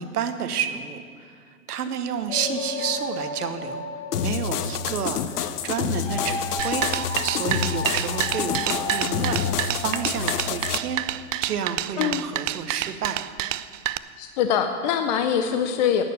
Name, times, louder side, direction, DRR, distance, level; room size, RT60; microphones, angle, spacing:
voice 1, 0.0-3.8 4.2-6.9 7.2-9.4 9.8-11.0 11.4-13.3, right 7 dB, 85° right, 9 dB, 1.2 m, -30 dB
sound 1, 2.3-10.8, left 2 dB, 15° left, 2.9 m, -34 dB
sound 2, 4.1-10.8, left 9 dB, 90° left, 0.7 m, -28 dB
sound 3, 6.6-14.0, right 14 dB, 60° right, 0.5 m, -28 dB
voice 2, 14.2-16.0, left 8 dB, 30° left, 7 dB, 0.4 m, -23 dB
11.0 x 9.3 x 6.8 m, 2.1 s
hypercardioid pair, 135°, 45 cm